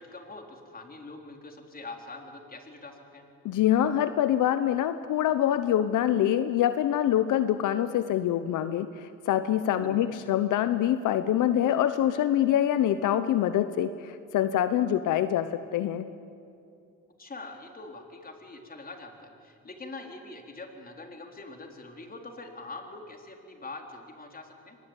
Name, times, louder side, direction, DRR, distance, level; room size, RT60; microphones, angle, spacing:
voice 1, 0.0-3.3 9.8-10.0 17.2-24.8, left 3 dB, 30° left, 3 dB, 3.8 m, -44 dB
voice 2, 3.4-16.1, left 11 dB, 75° left, 11 dB, 0.9 m, -25 dB
24.5 x 20.5 x 9.0 m, 2.5 s
cardioid pair, 95°, 31 cm